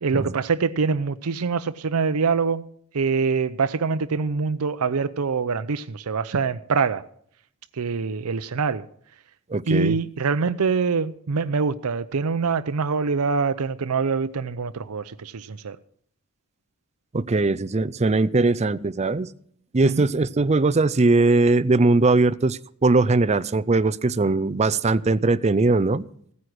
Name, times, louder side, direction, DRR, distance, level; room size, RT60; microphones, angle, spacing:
voice 1, 0.0-2.6 2.9-7.0 7.8-8.8 9.7-15.8 19.8-20.0, right 5 dB, 80° right, 0.6 m, -24 dB
voice 2, 9.5-10.0 17.1-19.3 19.7-26.1, right 3 dB, 30° right, 0.5 m, -20 dB
16.0 x 9.6 x 6.2 m
head